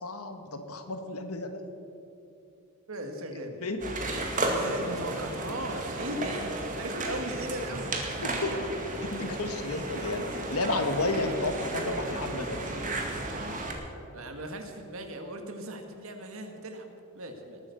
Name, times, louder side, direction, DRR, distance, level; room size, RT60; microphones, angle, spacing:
voice 1, 0.0-1.6 3.6-3.8 8.2-8.5 9.0-12.6, left 2 dB, 75° left, 7 dB, 1.5 m, -32 dB
voice 2, 2.9-3.7 4.5-8.2 8.5-8.6 14.1-17.6, right 1 dB, 65° right, 4 dB, 1.7 m, -38 dB
sound 1, 3.8-13.7, right 2 dB, 35° right, 2.0 m, -33 dB
19.5 x 9.1 x 6.9 m, 2.8 s
head